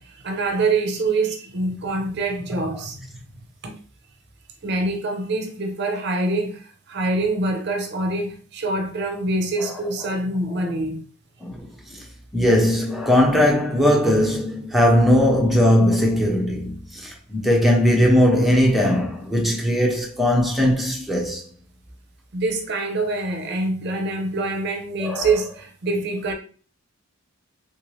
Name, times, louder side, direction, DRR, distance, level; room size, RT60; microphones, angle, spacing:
voice 1, 0.0-3.0 3.6-3.8 4.6-11.1 22.3-26.3, right 2 dB, 50° right, 0.6 m, -25 dB
voice 2, 12.3-21.4 25.0-25.3, left 1 dB, ahead, 0.6 m, -19 dB
3.6 x 2.6 x 3.1 m
head